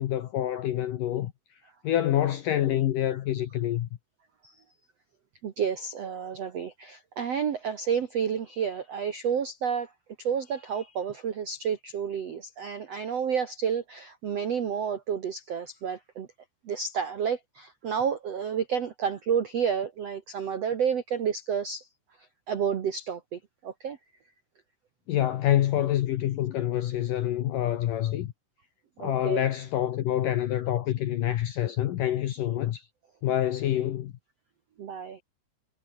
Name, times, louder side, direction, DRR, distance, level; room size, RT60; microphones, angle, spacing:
voice 1, 0.0-1.3 1.8-3.9 25.1-28.3 29.0-32.8 33.2-34.1, left 12 dB, 70° left, 2.1 m, -27 dB
voice 2, 5.4-9.9 10.2-16.3 16.6-21.9 22.5-24.0 29.0-29.4 34.8-35.2, right 7 dB, 70° right, 1.5 m, -30 dB
omnidirectional pair, 5.2 m